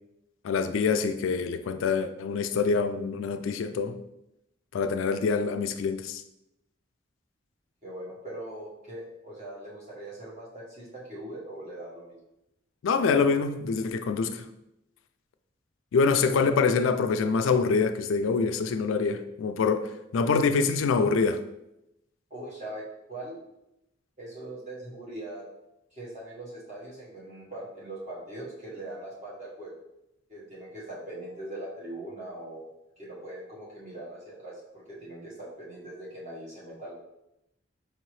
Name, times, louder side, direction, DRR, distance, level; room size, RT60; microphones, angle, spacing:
voice 1, 0.4-4.0 4.7-6.2 12.8-14.4 15.9-21.4, left 5 dB, 85° left, 0.3 m, -25 dB
voice 2, 7.8-12.2 22.3-23.4 24.2-25.4 25.9-29.7 30.3-32.7 33.0-36.9, right 1 dB, 40° right, 1.1 m, -41 dB
4.7 x 2.8 x 3.1 m
head